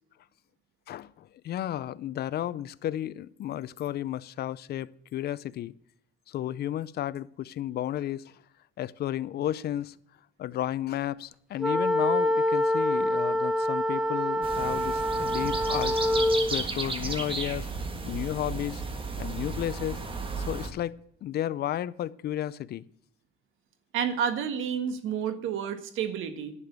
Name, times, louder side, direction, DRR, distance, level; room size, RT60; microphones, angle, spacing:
voice 1, 0.9-5.7 6.3-8.3 8.8-10.0 10.4-16.0 16.5-17.7 18.0-18.8 19.2-20.0 20.4-20.9 21.2-22.8, left 12 dB, 50° left, 0.5 m, -33 dB
sound 1, 11.6-16.5, left 1 dB, ahead, 1.0 m, -26 dB
sound 2, 14.4-20.7, right 3 dB, 25° right, 1.5 m, -34 dB
voice 2, 23.9-26.5, right 8 dB, 75° right, 1.6 m, -30 dB
11.0 x 6.8 x 8.3 m
cardioid pair, 145°, 21 cm